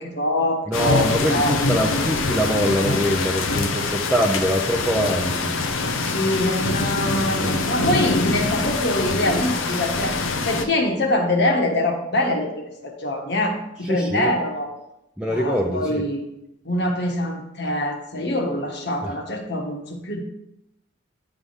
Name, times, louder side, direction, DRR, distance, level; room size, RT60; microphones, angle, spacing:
voice 1, 0.0-1.5 6.0-12.5 12.8-14.7 15.3-16.2 16.6-20.2, left 1 dB, 55° left, 2 dB, 1.3 m, -24 dB
sound 1, 0.7-10.7, left 3 dB, 90° left, 0.7 m, -24 dB
voice 2, 0.7-5.5 7.4-7.6 13.8-14.3 15.2-16.0, equal, 5° right, -2 dB, 0.5 m, -23 dB
9.5 x 3.5 x 5.6 m, 0.85 s
head